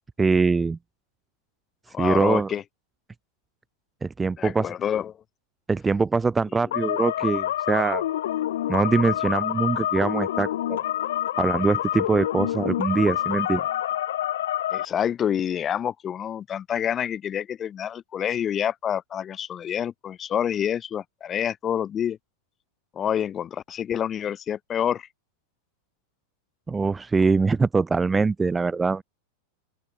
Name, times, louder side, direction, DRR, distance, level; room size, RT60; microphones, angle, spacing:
voice 1, 0.2-0.8 2.0-2.5 4.0-4.7 5.7-8.0 8.7-10.8 11.4-13.6 26.7-29.0, right 4 dB, 10° right, 5.8 m, -23 dB
voice 2, 1.9-2.6 4.4-5.1 14.7-22.2 22.9-25.1, left 9 dB, 20° left, 7.9 m, -27 dB
sound 1, 6.7-14.9, left 12 dB, 80° left, 3.9 m, -27 dB
open air
supercardioid pair, 160°, 0 cm